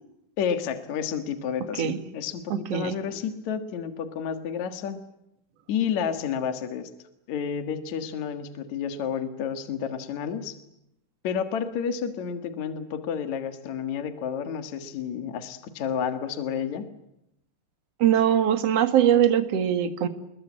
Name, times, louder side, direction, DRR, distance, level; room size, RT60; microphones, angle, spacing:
voice 1, 0.4-5.0 5.7-6.9 7.3-10.6 11.2-16.9, left 7 dB, 60° left, 8 dB, 2.8 m, -30 dB
voice 2, 2.5-3.0 18.0-20.1, right 10 dB, 50° right, 9 dB, 2.6 m, -22 dB
28.5 x 21.5 x 8.7 m, 0.81 s
omnidirectional pair, 3.9 m